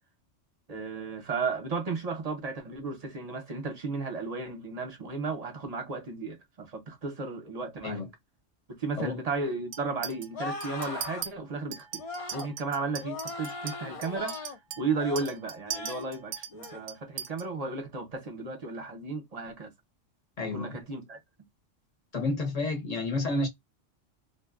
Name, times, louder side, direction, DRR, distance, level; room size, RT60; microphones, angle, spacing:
voice 1, 0.7-8.0 8.7-12.0 12.3-19.7 20.5-21.2, right 4 dB, 40° right, 0.7 m, -34 dB
Chink clink, 9.7-10.3 10.6-11.3 11.7-17.4, right 8 dB, 90° right, 1.0 m, -40 dB
sound 1, 10.3-11.3 12.0-12.5 13.0-14.6 14.9-15.3 15.7-16.1 16.5-16.8, left 3 dB, 50° left, 0.4 m, -39 dB
voice 2, 20.4-20.8 22.1-23.5, left 2 dB, 35° left, 0.9 m, -30 dB
2.5 x 2.2 x 2.4 m
omnidirectional pair, 1.3 m